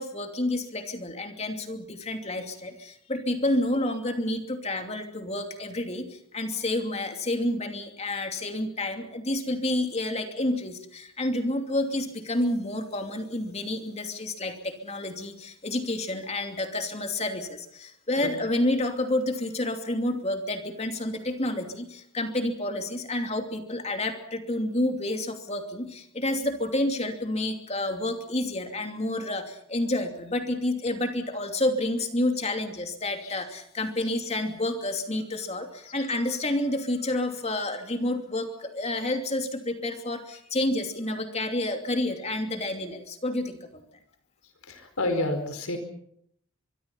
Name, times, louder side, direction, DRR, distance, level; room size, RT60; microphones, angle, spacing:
voice 1, 0.0-43.8, left 1 dB, 30° left, 5 dB, 2.8 m, -29 dB
voice 2, 18.2-18.7 27.8-28.0 33.2-33.4 34.0-34.1 35.8-36.1 43.7-43.8 44.6-45.8, left 2 dB, 85° left, 7 dB, 4.8 m, -31 dB
24.0 x 23.5 x 5.7 m, 0.71 s
head